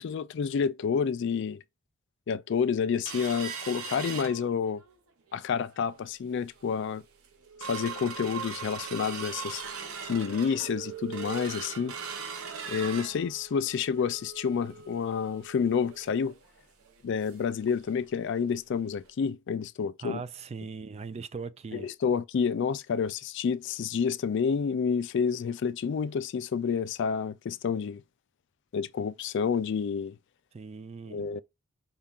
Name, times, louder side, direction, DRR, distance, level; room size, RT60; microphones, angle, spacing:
voice 1, 0.0-1.6 2.3-4.8 5.3-7.0 7.7-9.6 10.1-11.9 12.7-16.3 17.0-20.2 21.7-28.0 28.7-30.2 31.1-31.4, left 6 dB, 55° left, 0.3 m, -29 dB
sound 1, 3.0-4.9 5.3-5.4 5.8-6.1 6.6-6.7 7.0-17.6 17.9-18.0 18.3-18.5 19.0-19.1, right 6 dB, 85° right, 0.8 m, -40 dB
voice 2, 20.0-21.9 30.5-31.2, right 5 dB, 30° right, 0.3 m, -39 dB
5.5 x 2.4 x 3.6 m
head